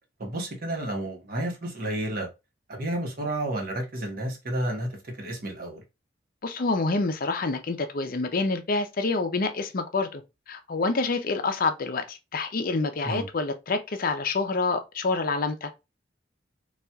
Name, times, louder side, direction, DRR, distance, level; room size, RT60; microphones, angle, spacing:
voice 1, 0.2-2.3 2.7-4.9 5.2-5.8 13.0-13.2, right 1 dB, 50° right, 1.0 m, -31 dB
voice 2, 6.4-10.2 10.5-15.7, left 3 dB, 50° left, 0.5 m, -27 dB
4.2 x 2.4 x 2.3 m
head